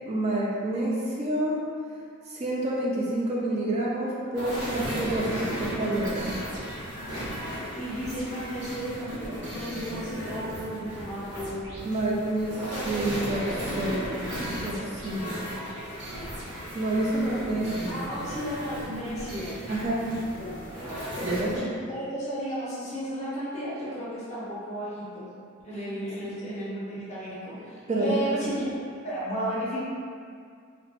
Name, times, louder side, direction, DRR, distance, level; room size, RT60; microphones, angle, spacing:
voice 1, 0.1-1.6 2.3-6.4 11.8-14.0 14.6-15.4 16.7-18.2 19.7-20.2 21.2-21.6 27.9-28.2, right 1 dB, 30° right, -5 dB, 0.3 m, -28 dB
sound 1, 4.3-21.6, equal, 55° right, 0.8 m, -35 dB
voice 2, 7.7-11.7 17.9-19.6 20.4-20.6 21.4-21.6 21.9-25.3 25.6-27.5 28.0-28.7 29.0-29.8, equal, 35° left, -9 dB, 0.8 m, -33 dB
2.9 x 2.1 x 2.8 m, 2.2 s
head